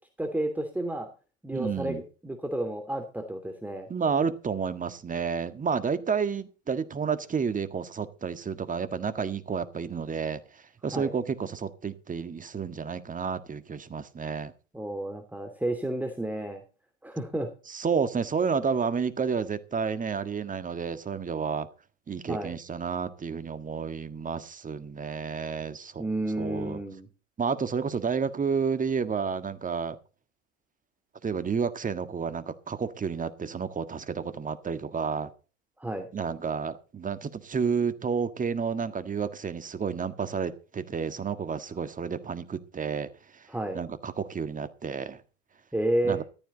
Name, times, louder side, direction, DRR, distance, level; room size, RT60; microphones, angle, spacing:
voice 1, 0.2-1.1 1.4-3.9 10.9-11.1 14.7-16.6 17.0-17.5 22.3-22.5 26.0-27.1 35.8-36.1 43.5-43.8 45.7-46.2, right 1 dB, 5° right, 5 dB, 2.7 m, -31 dB
voice 2, 1.5-2.0 3.9-10.4 10.8-14.5 17.7-21.7 22.1-26.0 26.4-26.8 27.4-30.0 31.2-35.3 36.1-43.5 43.8-45.2 46.0-46.2, right 6 dB, 20° right, 12 dB, 1.7 m, -30 dB
14.0 x 13.5 x 4.0 m, 0.35 s
hypercardioid pair, 85°, 37 cm